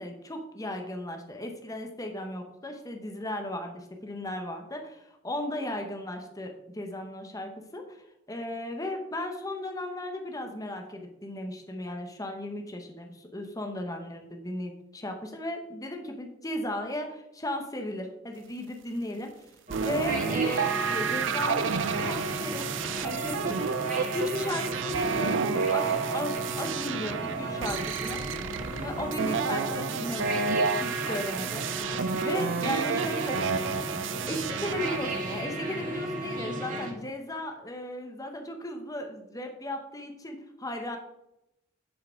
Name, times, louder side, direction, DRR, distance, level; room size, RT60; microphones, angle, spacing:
voice 1, 0.0-19.3 19.8-22.7 23.0-23.7 24.1-28.2 28.8-31.6 32.2-33.5 34.2-41.0, left 1 dB, 20° left, 4 dB, 1.0 m, -36 dB
sound 1, 19.7-36.9, right 1 dB, 45° right, 1.7 m, -35 dB
sound 2, 19.7-35.4, right 5 dB, 75° right, 0.5 m, -30 dB
10.5 x 4.8 x 4.5 m, 0.85 s
head